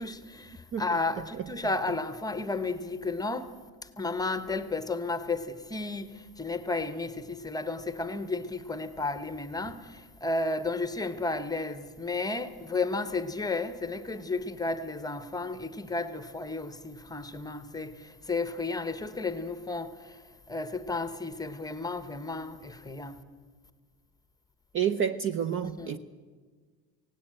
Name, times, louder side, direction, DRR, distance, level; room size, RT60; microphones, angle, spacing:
voice 1, 0.0-23.2 25.6-26.0, left 3 dB, 10° left, 0.9 m, -33 dB
voice 2, 24.7-26.0, right 8 dB, 30° right, 0.6 m, -29 dB
17.5 x 17.0 x 9.0 m
cardioid pair, 135°, 41 cm